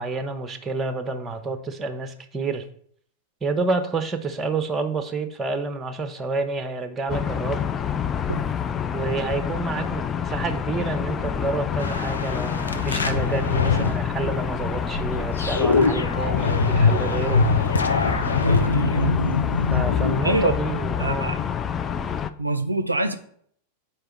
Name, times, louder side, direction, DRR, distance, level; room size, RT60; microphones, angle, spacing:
voice 1, 0.0-2.7 3.4-7.7 8.9-17.4 19.7-21.3, right 3 dB, 15° right, 9 dB, 0.7 m, -29 dB
sound 1, 7.1-22.3, left 8 dB, 25° left, 0.3 m, -27 dB
sound 2, 11.8-20.2, left 4 dB, 75° left, 0.6 m, -24 dB
voice 2, 18.4-19.5 20.2-20.6 21.0-21.4 22.4-23.2, right 2 dB, 85° right, 9 dB, 0.4 m, -25 dB
4.5 x 4.4 x 5.1 m, 0.63 s
figure-of-eight pair, 90°, 0 cm